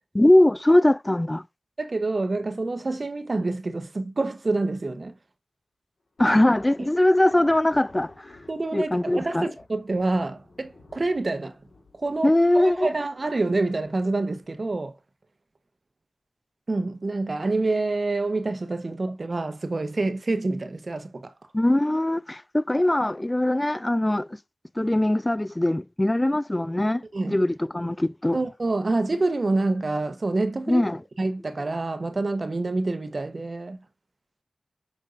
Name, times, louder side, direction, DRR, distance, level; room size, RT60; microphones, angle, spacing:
voice 1, 0.1-1.4 6.2-8.3 8.7-9.5 12.2-12.9 21.5-24.4 24.8-28.4 30.7-31.0, left 1 dB, 25° left, 0.3 m, -21 dB
voice 2, 1.8-5.1 6.2-6.4 8.5-11.5 11.9-14.9 16.7-21.3 27.1-27.4 28.3-30.8 31.2-33.8, right 2 dB, 60° right, 1.1 m, -27 dB
sound 1, 6.2-14.8, left 2 dB, 80° left, 2.8 m, -53 dB
6.6 x 5.5 x 2.6 m
cardioid pair, 40°, 0 cm